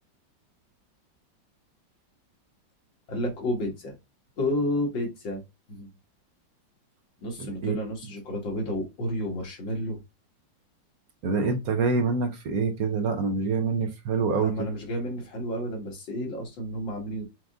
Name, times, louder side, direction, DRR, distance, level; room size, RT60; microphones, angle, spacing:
voice 1, 3.1-3.9 4.4-5.4 5.7-5.9 7.2-10.0 14.4-17.2, left 1 dB, 85° left, 2.4 m, -31 dB
voice 2, 11.2-14.5, right 4 dB, 65° right, 1.0 m, -26 dB
6.0 x 2.5 x 3.5 m
omnidirectional pair, 2.0 m